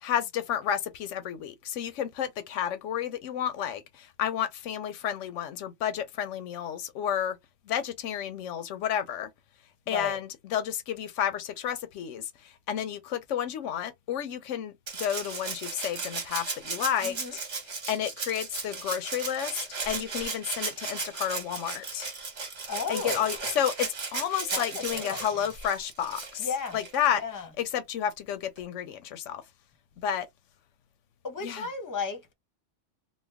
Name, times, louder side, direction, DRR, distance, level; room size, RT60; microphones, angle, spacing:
voice 1, 0.0-7.4 7.7-9.3 9.9-14.7 15.0-17.4 17.9-22.1 22.9-26.5 26.7-27.2 27.6-29.4 30.0-30.3 31.4-31.7, left 9 dB, 85° left, 0.9 m, -31 dB
voice 2, 9.9-10.2 17.0-17.4 22.7-23.3 24.5-25.4 26.4-26.8 27.1-27.5 31.2-32.3, left 5 dB, 20° left, 0.7 m, -34 dB
Rattle (instrument), 14.9-27.2 28.6-28.7, right 4 dB, 70° right, 1.6 m, -36 dB
3.1 x 2.2 x 3.4 m
omnidirectional pair, 1.2 m